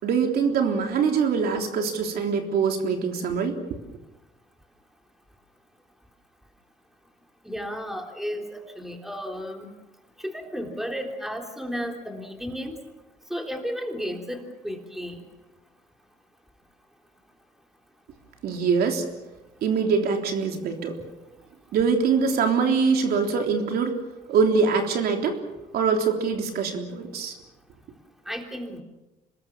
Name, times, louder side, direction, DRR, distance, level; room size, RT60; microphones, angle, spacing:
voice 1, 0.0-3.6 18.4-19.0 19.6-21.0 21.7-24.0 24.3-25.4 25.7-27.4, right 5 dB, 65° right, 4 dB, 3.5 m, -23 dB
voice 2, 7.5-9.7 10.2-12.8 13.3-15.2 28.3-28.8, equal, ahead, 3 dB, 3.5 m, -33 dB
26.5 x 21.0 x 7.3 m, 1.0 s
cardioid pair, 110°, 17 cm